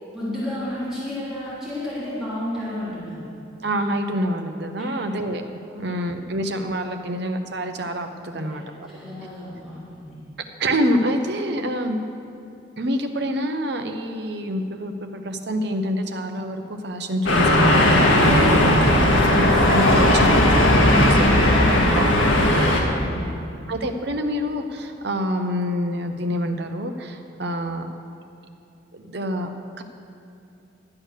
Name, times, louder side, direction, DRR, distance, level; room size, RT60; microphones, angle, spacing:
voice 1, 0.1-3.3 4.8-5.2 5.7-5.9 8.4-8.6 8.9-10.2 22.9-23.3, left 1 dB, 5° right, -12 dB, 3.4 m, -32 dB
voice 2, 3.6-5.4 5.7-9.0 10.6-12.0 12.8-22.9 23.7-27.9 28.9-29.5 29.8-29.9, equal, 60° right, 5 dB, 0.9 m, -27 dB
sound 1, 17.3-22.8, left 1 dB, 80° left, 1.7 m, -16 dB
12.0 x 8.6 x 6.6 m, 2.7 s
head